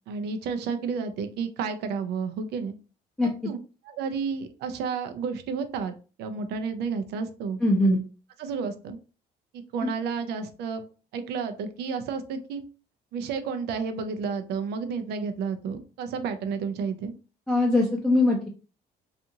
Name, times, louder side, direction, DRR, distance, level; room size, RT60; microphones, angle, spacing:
voice 1, 0.1-2.7 3.4-3.6 3.8-7.9 8.4-9.0 9.7-10.8 11.1-12.6 13.1-17.1, right 5 dB, 75° right, 8 dB, 0.5 m, -31 dB
voice 2, 7.6-8.0 17.5-18.5, left 2 dB, 5° left, -2 dB, 0.5 m, -21 dB
2.6 x 2.4 x 2.7 m, 0.36 s
cardioid pair, 110°, 17 cm